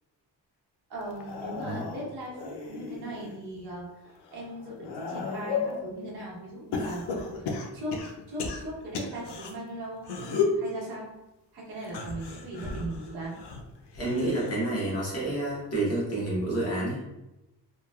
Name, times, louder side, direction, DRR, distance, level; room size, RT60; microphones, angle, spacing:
voice 1, 0.9-4.0 4.3-8.0 8.3-11.1 11.5-13.4, right 1 dB, 65° right, -4 dB, 1.1 m, -38 dB
sound 1, 1.1-3.4 3.9-5.9 6.7-9.5 10.0-10.6 11.8-14.7 15.1-15.5 16.7-16.8, left 4 dB, 75° left, 0.6 m, -34 dB
voice 2, 13.9-17.0, right 2 dB, 35° left, -6 dB, 1.0 m, -29 dB
3.0 x 2.3 x 2.3 m, 0.94 s
cardioid pair, 155°, 41 cm